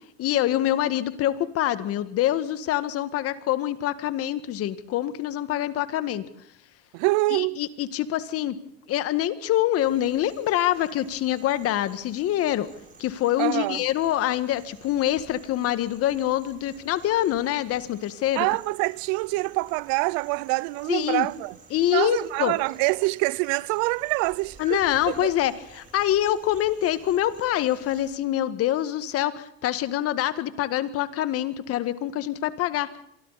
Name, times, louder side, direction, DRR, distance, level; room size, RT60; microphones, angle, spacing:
voice 1, 0.2-6.2 7.3-8.6 8.9-12.7 13.0-18.5 20.9-21.3 21.7-22.6 24.6-32.9, left 12 dB, 50° left, 1.8 m, -25 dB
voice 2, 6.9-7.6 13.4-13.9 18.4-21.6 21.9-24.8 25.1-25.3, right 24 dB, 65° right, 0.7 m, -25 dB
sound 1, 9.8-28.1, right 4 dB, 25° right, 7.5 m, -51 dB
27.0 x 23.5 x 4.2 m
supercardioid pair, 115°, 31 cm